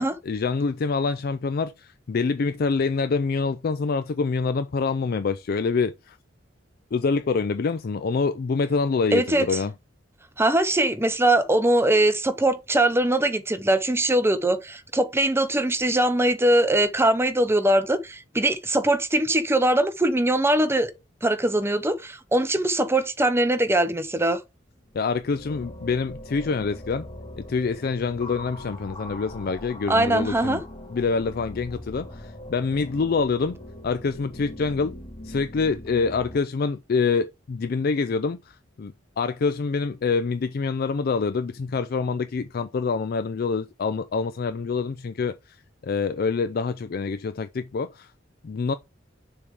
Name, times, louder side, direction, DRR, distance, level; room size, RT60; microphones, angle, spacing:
voice 1, 0.0-6.2 6.9-9.7 24.9-27.1 27.4-30.6 30.9-33.6 33.8-34.9 35.2-45.6 45.8-48.1 48.4-48.7, left 4 dB, 50° left, 0.4 m, -26 dB
voice 2, 9.1-9.5 10.4-20.9 21.2-24.4 29.9-30.6, right 1 dB, 15° right, 0.7 m, -21 dB
sound 1, 24.8-36.4, left 1 dB, 25° left, 1.7 m, -41 dB
6.9 x 3.5 x 4.8 m
head